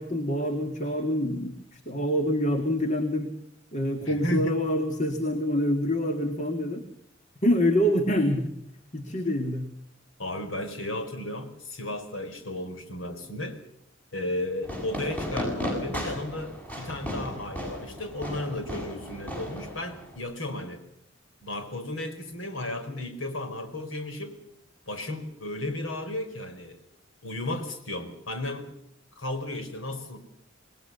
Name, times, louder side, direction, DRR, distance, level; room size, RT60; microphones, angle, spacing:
voice 1, 0.0-3.3 3.7-6.8 7.4-8.5 8.9-9.7, equal, 35° left, 5 dB, 2.1 m, -26 dB
voice 2, 4.0-4.6 10.2-13.6 14.1-20.8 21.4-24.4 24.9-26.8 27.2-28.7 29.2-30.2, left 1 dB, 85° left, 7 dB, 4.7 m, -34 dB
Fireworks, 14.6-20.2, equal, 10° left, 7.3 m, -35 dB
27.5 x 20.0 x 6.9 m, 0.75 s
head